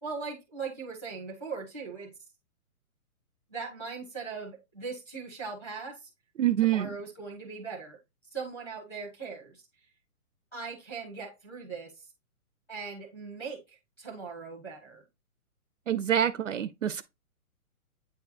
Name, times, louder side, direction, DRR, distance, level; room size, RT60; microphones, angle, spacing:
voice 1, 0.0-2.1 3.5-6.1 6.6-8.0 8.3-9.6 10.5-12.0 12.7-15.0, right 4 dB, 5° left, 0.9 m, -39 dB
voice 2, 6.4-6.9 15.9-17.0, right 10 dB, 60° right, 0.5 m, -26 dB
8.7 x 4.6 x 2.5 m
hypercardioid pair, 175°, 44 cm